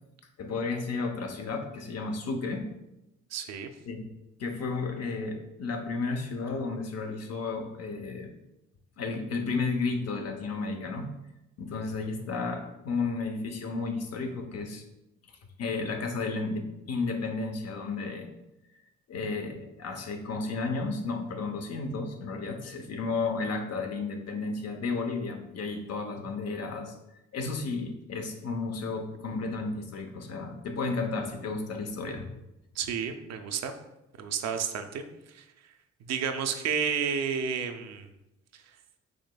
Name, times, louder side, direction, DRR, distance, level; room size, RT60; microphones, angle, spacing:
voice 1, 0.4-2.6 3.9-4.1 4.4-8.3 9.0-11.1 11.6-14.8 15.6-18.3 19.1-26.9 27.3-32.3, left 3 dB, 55° left, 4 dB, 0.7 m, -33 dB
voice 2, 3.3-3.7 32.8-33.7 34.2-35.4 36.0-38.1, right 7 dB, 60° right, 7 dB, 0.5 m, -31 dB
4.9 x 3.1 x 2.2 m, 0.91 s
cardioid pair, 90°, 30 cm